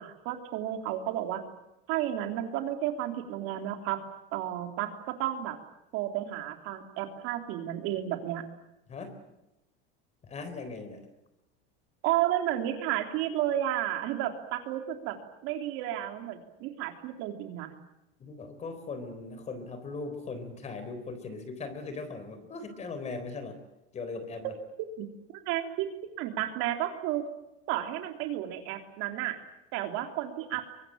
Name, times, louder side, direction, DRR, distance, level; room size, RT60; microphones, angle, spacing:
voice 1, 0.0-1.4 1.9-4.0 4.3-5.6 5.9-8.4 12.0-15.2 15.4-17.7 25.0-25.1 25.4-25.9 26.2-27.2 27.7-29.4 29.7-30.7, right 12 dB, 50° right, 5 dB, 3.3 m, -32 dB
voice 2, 10.2-11.1 18.2-23.6 23.9-24.5, left 3 dB, 25° left, 10 dB, 4.0 m, -39 dB
24.0 x 21.5 x 8.9 m, 0.91 s
supercardioid pair, 155°, 29 cm